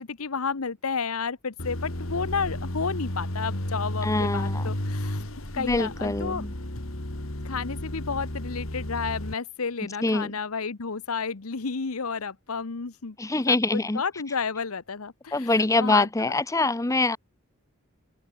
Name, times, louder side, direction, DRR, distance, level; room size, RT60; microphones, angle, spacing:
voice 1, 0.0-5.2 5.5-6.5 7.4-13.2 13.5-16.4, left 5 dB, 90° left, 1.0 m, -31 dB
sound 1, 1.6-9.3, left 1 dB, 70° left, 3.4 m, -32 dB
voice 2, 4.0-4.6 5.6-6.5 10.0-10.4 13.2-14.0 15.3-17.2, left 2 dB, 15° left, 0.7 m, -24 dB
open air
head